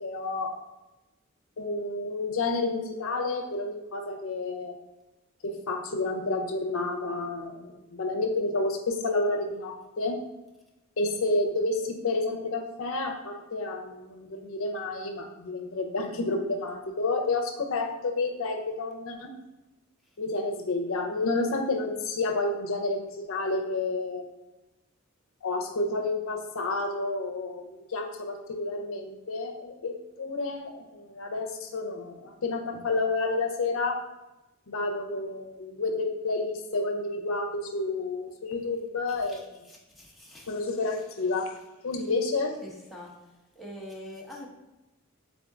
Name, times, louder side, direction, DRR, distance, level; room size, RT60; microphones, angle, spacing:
voice 1, 0.0-0.5 1.6-4.7 5.4-10.2 11.0-19.3 20.2-24.2 25.4-29.9 30.2-34.0 34.7-39.4 40.5-41.5 41.8-42.5, left 3 dB, 75° left, 4 dB, 0.6 m, -30 dB
voice 2, 39.7-40.5 42.6-43.1 43.6-44.5, left 1 dB, ahead, -3 dB, 0.8 m, -44 dB
3.6 x 3.5 x 3.6 m, 1.0 s
head